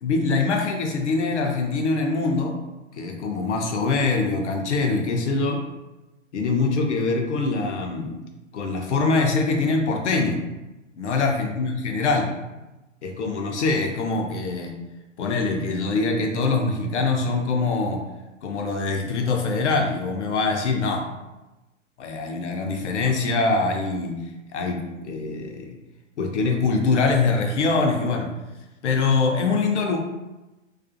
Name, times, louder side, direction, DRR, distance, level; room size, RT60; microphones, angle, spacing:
voice 1, 0.0-2.6 3.0-5.6 6.3-8.2 8.5-10.4 11.0-12.3 13.0-14.7 15.2-18.0 18.4-21.1 22.0-24.2 24.5-25.7 26.2-28.3 28.8-30.0, left 3 dB, 60° left, 2 dB, 0.6 m, -23 dB
2.5 x 2.3 x 2.5 m, 1.1 s
figure-of-eight pair, 110°, 39 cm